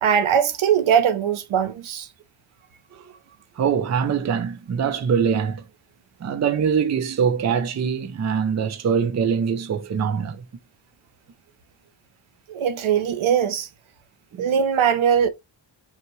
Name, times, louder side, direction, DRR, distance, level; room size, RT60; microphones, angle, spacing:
voice 1, 0.0-2.1 12.5-13.7 14.4-15.3, right 8 dB, 85° right, 0.8 m, -20 dB
voice 2, 3.6-5.6 6.2-10.4 14.3-14.5, right 7 dB, 35° right, 0.5 m, -23 dB
5.6 x 2.4 x 3.0 m
wide cardioid pair, 175°, 47 cm